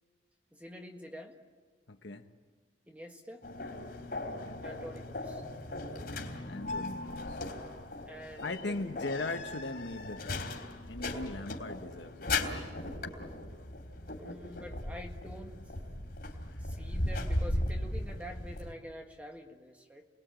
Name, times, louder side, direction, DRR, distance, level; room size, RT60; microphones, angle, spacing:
voice 1, 0.5-1.4 2.9-3.5 4.6-5.4 8.0-8.9 14.0-15.7 16.6-20.1, equal, 10° right, 2 dB, 1.7 m, -47 dB
voice 2, 1.9-2.2 4.2-4.6 6.5-7.4 8.4-10.5 10.9-12.9 13.6-13.7 16.5-16.6, left 2 dB, 70° left, 6 dB, 1.3 m, -40 dB
sound 1, 3.4-18.7, left 2 dB, 55° left, 3.6 m, -37 dB
29.5 x 21.0 x 9.0 m, 1.5 s
head